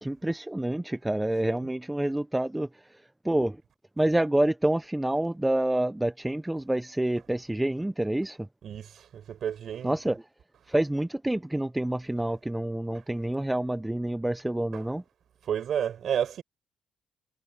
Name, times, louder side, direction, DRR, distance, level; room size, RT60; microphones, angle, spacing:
voice 1, 0.0-2.7 3.2-3.6 4.0-8.5 9.8-10.2 10.7-15.0, right 1 dB, 10° right, 0.7 m, -27 dB
voice 2, 8.6-10.1 14.7-14.9 15.4-16.4, right 9 dB, 65° right, 6.5 m, -31 dB
cardioid pair, 90°, 0 cm